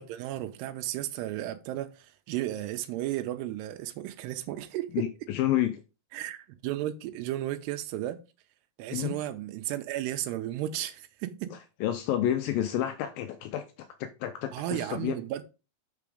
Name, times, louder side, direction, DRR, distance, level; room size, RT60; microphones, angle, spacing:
voice 1, 0.0-5.1 6.1-8.2 8.8-11.6 14.5-15.4, right 13 dB, 85° right, 2.8 m, -34 dB
voice 2, 4.9-5.8 8.9-9.1 11.5-13.6 14.0-15.2, left 12 dB, 85° left, 2.1 m, -30 dB
6.9 x 5.8 x 5.0 m
omnidirectional pair, 4.7 m